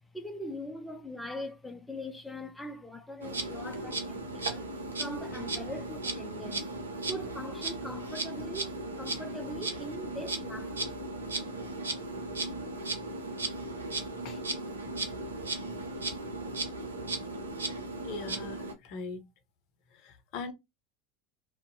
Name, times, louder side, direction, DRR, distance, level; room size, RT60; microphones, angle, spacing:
voice 1, 0.1-4.7 5.0-6.7 7.1-11.3, left 1 dB, 10° left, 0.5 m, -42 dB
Insect, 3.2-18.7, right 2 dB, 85° right, 0.5 m, -36 dB
voice 2, 18.0-19.2 20.0-20.5, left 4 dB, 55° left, 0.6 m, -40 dB
2.5 x 2.1 x 2.5 m
figure-of-eight pair, 75°, 0 cm